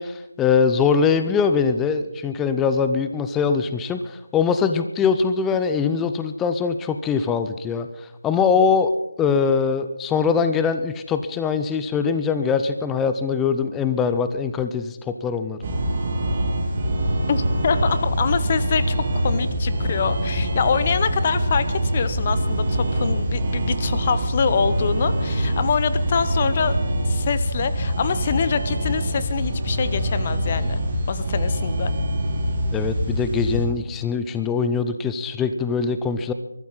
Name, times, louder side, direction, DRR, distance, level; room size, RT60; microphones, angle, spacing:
voice 1, 0.0-8.9 9.2-15.6 32.7-36.3, left 5 dB, 10° left, 9 dB, 0.6 m, -22 dB
sound 1, 15.6-33.7, equal, 30° right, 3.0 m, -24 dB
voice 2, 17.3-26.7 27.1-30.8 31.1-31.9, left 6 dB, 30° left, 12 dB, 0.9 m, -25 dB
22.5 x 14.0 x 4.1 m, 0.93 s
figure-of-eight pair, 160°, 0 cm